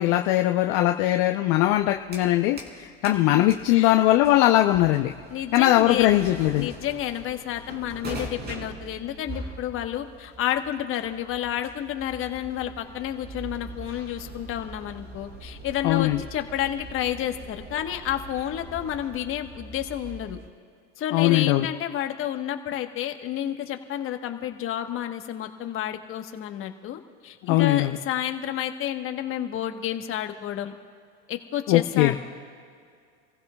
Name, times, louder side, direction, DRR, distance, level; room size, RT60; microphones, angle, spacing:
voice 1, 0.0-5.1 5.5-6.7 15.8-16.2 21.1-21.7 27.4-28.0 31.7-32.1, left 15 dB, 55° left, 3 dB, 0.8 m, -20 dB
sound 1, 1.7-2.8 3.0-20.5, right 2 dB, 30° right, 3.5 m, -42 dB
voice 2, 3.3-3.9 5.3-6.2 6.6-20.4 21.0-30.7 31.3-32.2, left 11 dB, 40° left, 6 dB, 1.3 m, -30 dB
29.0 x 15.5 x 2.4 m, 2.2 s
hypercardioid pair, 110°, 34 cm